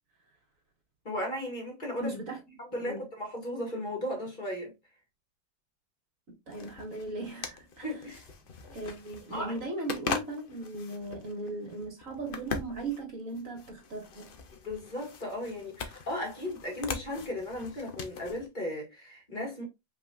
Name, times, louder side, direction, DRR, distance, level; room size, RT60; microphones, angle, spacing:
voice 1, 1.0-2.1 2.6-4.7 7.8-8.2 9.3-9.5 14.6-19.6, left 1 dB, 30° left, 1.9 m, -36 dB
voice 2, 2.0-2.4 2.8-3.0 6.5-7.9 8.7-14.3, right 2 dB, 50° right, 2.2 m, -38 dB
sound 1, 6.5-18.5, left 5 dB, 55° left, 0.6 m, -41 dB
5.4 x 3.6 x 2.4 m
omnidirectional pair, 1.8 m